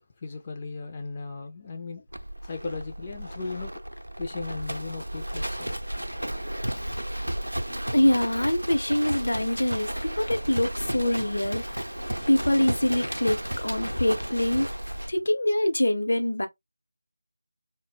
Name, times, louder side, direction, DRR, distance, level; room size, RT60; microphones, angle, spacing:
voice 1, 0.2-2.1 2.4-3.7 4.2-5.7, left 3 dB, 25° left, 0.3 m, -36 dB
Livestock farm animals working animals, 2.1-15.1, right 1 dB, 90° right, 0.5 m, -33 dB
voice 2, 7.9-11.8 12.3-14.7 15.1-16.5, left 1 dB, 65° left, 0.6 m, -24 dB
2.0 x 2.0 x 3.2 m
figure-of-eight pair, 165°, 0 cm